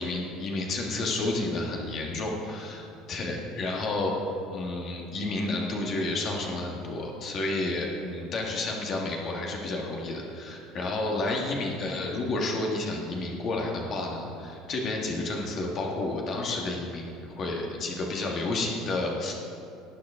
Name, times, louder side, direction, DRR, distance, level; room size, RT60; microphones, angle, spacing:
voice 1, 0.0-4.1 4.5-19.3, left 2 dB, 30° left, -1 dB, 1.6 m, -31 dB
18.5 x 7.8 x 3.6 m, 2.6 s
cardioid pair, 175°, 0 cm